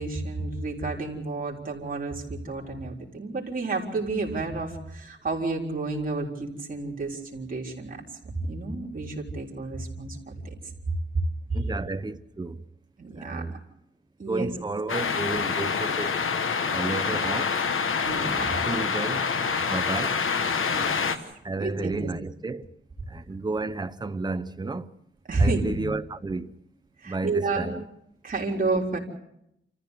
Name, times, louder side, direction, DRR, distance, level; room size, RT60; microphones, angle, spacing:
voice 1, 0.0-8.0 8.3-10.6 11.5-11.6 13.0-13.5 14.2-14.5 18.0-18.6 20.7-21.1 21.6-22.1 25.3-25.9 27.0-27.7 28.2-29.0, right 3 dB, 40° right, 4.0 m, -30 dB
voice 2, 11.5-12.7 13.2-13.6 14.2-16.2 16.7-17.6 18.7-20.2 21.4-22.7 23.1-24.9 25.4-26.6 27.0-27.9, right 3 dB, 20° right, 0.8 m, -32 dB
sound 1, 14.9-21.2, left 5 dB, 80° left, 1.4 m, -26 dB
28.0 x 14.5 x 8.2 m
wide cardioid pair, 160°, 21 cm